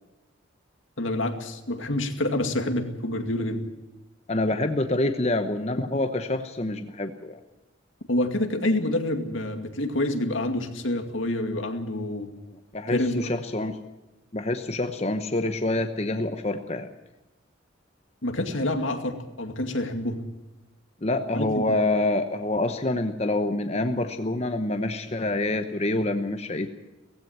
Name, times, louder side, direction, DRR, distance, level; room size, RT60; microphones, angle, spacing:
voice 1, 1.0-3.6 8.1-12.3 12.9-13.3 18.2-20.2 21.3-21.6, left 1 dB, 80° left, 6 dB, 2.2 m, -27 dB
voice 2, 4.3-7.4 12.7-13.8 14.3-16.9 21.0-26.7, left 2 dB, 30° left, 7 dB, 1.0 m, -26 dB
18.0 x 15.5 x 9.3 m, 1.1 s
head